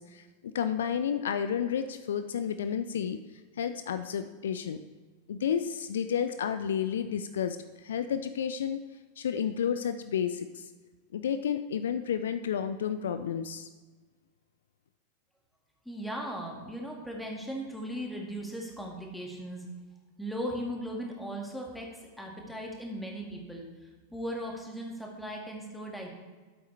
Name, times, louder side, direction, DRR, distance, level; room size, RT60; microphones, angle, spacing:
voice 1, 0.0-3.2 3.6-4.8 5.3-8.8 9.2-10.7 11.1-13.7, left 8 dB, 65° left, 10 dB, 0.4 m, -31 dB
voice 2, 15.9-19.7 20.2-21.9 22.2-26.1, equal, ahead, -1 dB, 2.0 m, -38 dB
12.0 x 8.2 x 3.3 m, 1.4 s
figure-of-eight pair, 90°, 0 cm